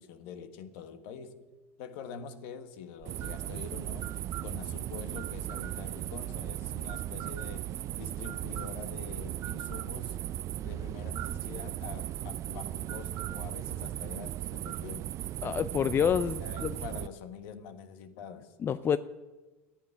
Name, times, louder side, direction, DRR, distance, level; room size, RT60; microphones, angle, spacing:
voice 1, 0.0-1.4 1.8-4.1 4.4-10.3 10.6-15.1 16.4-18.5, left 6 dB, 65° left, 1.4 m, -45 dB
sound 1, 3.0-17.1, right 12 dB, 45° right, 0.4 m, -37 dB
voice 2, 15.4-16.8 18.6-19.0, left 8 dB, 30° left, 0.5 m, -28 dB
14.0 x 8.5 x 9.8 m
hypercardioid pair, 80°, 7 cm